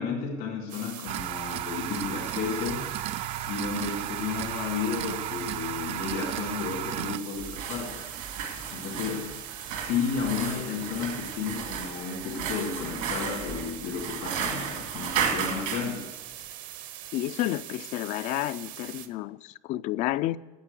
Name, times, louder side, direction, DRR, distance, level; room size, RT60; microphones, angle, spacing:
voice 1, 0.0-2.9 3.5-8.0 8.7-9.4 9.7-16.1, left 6 dB, 85° left, 2.6 m, -32 dB
sound 1, 0.7-19.1, right 11 dB, 65° right, 0.9 m, -42 dB
sound 2, 1.1-7.2, right 13 dB, 45° right, 0.4 m, -34 dB
sound 3, 7.4-15.9, right 7 dB, 85° right, 2.3 m, -34 dB
voice 2, 17.1-20.4, left 15 dB, 55° left, 0.4 m, -30 dB
9.5 x 8.2 x 8.2 m
cardioid pair, 145°, 14 cm